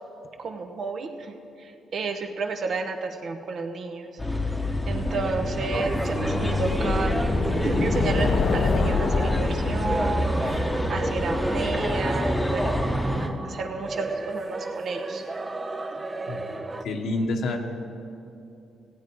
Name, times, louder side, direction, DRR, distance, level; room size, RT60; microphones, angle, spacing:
voice 1, 0.4-1.3 1.6-4.1 4.9-7.3 7.6-15.2, right 4 dB, 55° right, 5 dB, 0.9 m, -31 dB
sound 1, 4.2-13.3, left 1 dB, 5° left, 0.9 m, -27 dB
sound 2, 4.7-11.8, left 5 dB, 50° left, 0.5 m, -29 dB
sound 3, 5.7-16.8, right 2 dB, 25° right, 0.6 m, -33 dB
voice 2, 16.3-17.6, left 2 dB, 70° left, 4 dB, 1.1 m, -29 dB
16.0 x 8.5 x 4.7 m, 2.7 s
cardioid pair, 90°, 0 cm